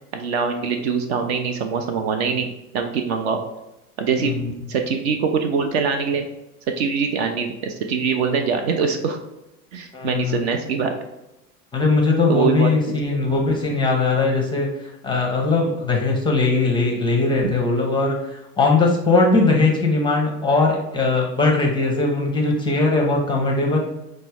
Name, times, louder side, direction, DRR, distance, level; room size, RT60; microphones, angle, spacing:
voice 1, 0.1-3.4 4.0-4.3 4.7-6.3 6.8-9.2 9.7-10.9 12.3-12.7 13.1-13.2, right 5 dB, 45° right, 5 dB, 0.5 m, -23 dB
voice 2, 9.9-10.4 11.7-23.8, left 3 dB, 10° left, 0 dB, 0.5 m, -20 dB
4.9 x 2.1 x 3.4 m, 0.95 s
figure-of-eight pair, 75°, 45 cm